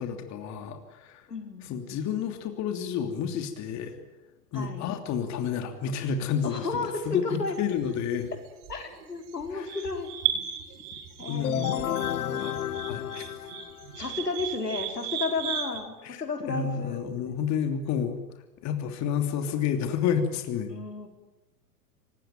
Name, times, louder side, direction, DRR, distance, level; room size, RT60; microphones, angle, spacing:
voice 1, 0.0-1.3 1.6-4.0 4.5-8.3 9.5-9.8 11.3-11.8 12.3-12.6 12.9-13.3 16.0-16.2 16.5-18.2 18.6-20.7, left 7 dB, 35° left, 6 dB, 3.1 m, -30 dB
voice 2, 1.3-1.7 4.5-4.8 6.4-7.6 8.7-10.1 11.2-12.6 14.0-17.0 20.7-21.1, left 4 dB, 90° left, 4 dB, 4.3 m, -33 dB
sound 1, 7.4-15.8, right 10 dB, 50° right, 4.5 m, -36 dB
sound 2, 11.4-14.1, left 12 dB, 70° left, 0.8 m, -31 dB
25.0 x 20.0 x 9.3 m, 1.0 s
hypercardioid pair, 100°, 46 cm